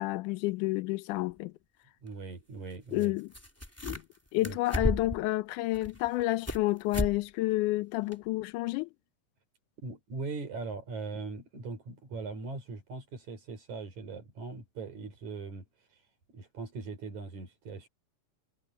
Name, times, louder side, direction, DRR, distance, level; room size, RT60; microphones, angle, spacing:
voice 1, 0.0-1.5 2.9-3.3 3.8-4.0 4.3-8.9, left 18 dB, 90° left, 2.2 m, -30 dB
sound 1, 1.3-1.4 3.0-3.1 3.3-4.2 4.4-5.2 5.7-6.6 6.9-7.2 7.5-7.6 8.1-8.2, equal, 5° left, 3.1 m, -33 dB
voice 2, 2.0-3.1 4.4-4.6 9.8-15.6 16.3-17.9, right 4 dB, 70° right, 6.4 m, -40 dB
omnidirectional pair, 3.5 m